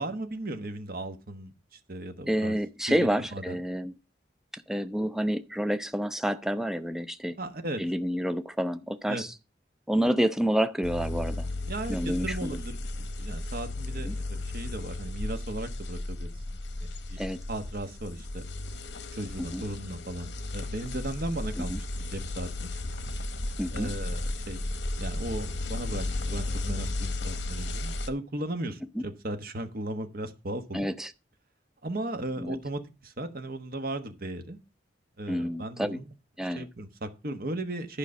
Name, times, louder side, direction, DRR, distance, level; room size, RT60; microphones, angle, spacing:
voice 1, 0.0-2.6 2.9-3.6 7.4-7.8 9.1-9.2 11.7-16.3 16.7-17.2 17.5-18.4 19.1-22.5 23.7-24.2 24.5-24.6 25.0-30.9 31.8-34.6 35.2-36.0 36.4-38.0, right 1 dB, 55° right, 1.2 m, -36 dB
voice 2, 2.3-3.9 4.5-7.4 7.8-9.3 9.9-11.5 11.9-12.6 14.0-14.2 17.2-17.4 19.5-19.6 21.6-21.8 23.6-23.9 28.9-29.0 30.7-31.1 32.4-32.6 35.3-36.0 36.4-36.7, equal, 5° right, 0.5 m, -29 dB
sound 1, 10.8-28.1, left 2 dB, 75° left, 1.0 m, -34 dB
11.0 x 5.1 x 5.2 m
head